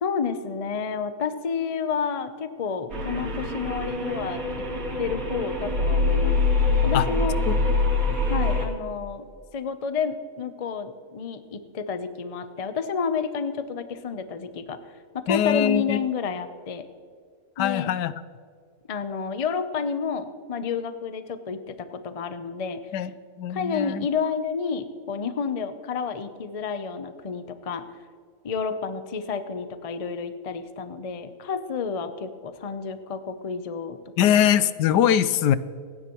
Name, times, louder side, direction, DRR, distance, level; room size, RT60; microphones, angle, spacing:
voice 1, 0.0-4.4 5.0-6.4 6.8-7.4 8.3-9.3 9.5-14.8 15.1-16.8 17.6-17.9 18.9-22.8 23.5-27.8 28.4-34.0, left 6 dB, 60° left, 10 dB, 0.3 m, -30 dB
sound 1, 2.9-8.7, left 3 dB, 55° right, 2.5 m, -24 dB
voice 2, 15.3-16.0 17.6-18.2 22.9-23.1 23.4-24.1 34.2-35.6, left 10 dB, 85° left, 15 dB, 1.2 m, -22 dB
27.5 x 10.0 x 3.0 m, 2.1 s
omnidirectional pair, 1.8 m